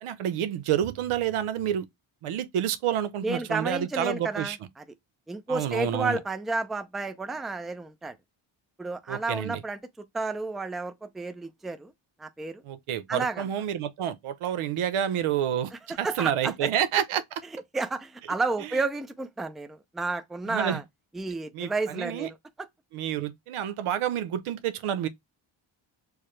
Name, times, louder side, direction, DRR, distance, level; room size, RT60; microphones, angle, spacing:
voice 1, 0.0-1.9 2.2-4.6 5.5-6.2 9.1-9.6 12.6-15.7 16.0-17.2 18.7-18.8 20.5-20.8 21.5-22.3 22.9-25.1, right 10 dB, 90° right, 0.7 m, -29 dB
voice 2, 3.2-4.8 5.3-8.1 8.8-9.8 10.1-11.9 12.2-12.6 13.1-13.4 15.9-16.7 17.7-20.8 21.1-22.7, right 3 dB, ahead, 0.3 m, -31 dB
4.7 x 2.1 x 3.1 m
wide cardioid pair, 130°, 48 cm